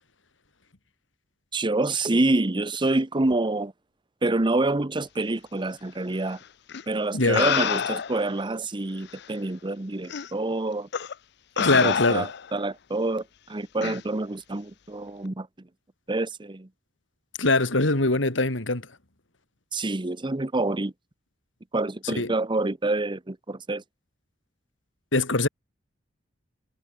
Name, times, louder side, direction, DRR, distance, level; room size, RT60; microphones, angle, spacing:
voice 1, 1.5-3.7 4.2-6.4 6.9-10.9 11.6-15.5 16.1-16.7 19.7-20.9 21.7-23.8, right 2 dB, 25° right, 0.9 m, -27 dB
sound 1, 6.7-6.8 7.3-8.3 9.2-9.3 10.1-10.3 10.9-11.1 11.6-12.5 13.8-14.0, left 7 dB, 65° left, 0.6 m, -27 dB
voice 2, 11.6-12.3 17.4-18.8 22.0-22.3 25.1-25.5, left 2 dB, 85° left, 2.9 m, -22 dB
head